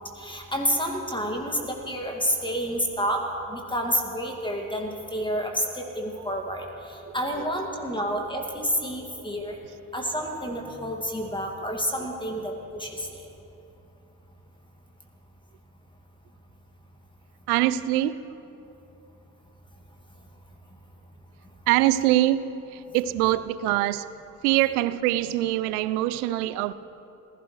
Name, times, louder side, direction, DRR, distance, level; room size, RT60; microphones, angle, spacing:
voice 1, 0.2-3.2 3.5-6.6 7.1-9.6 9.9-13.1, equal, 10° left, 2.2 m, -29 dB
voice 2, 17.5-18.3 21.7-24.1 24.4-26.7, right 14 dB, 70° right, 0.7 m, -24 dB
27.0 x 15.5 x 3.3 m
figure-of-eight pair, 55°, 47 cm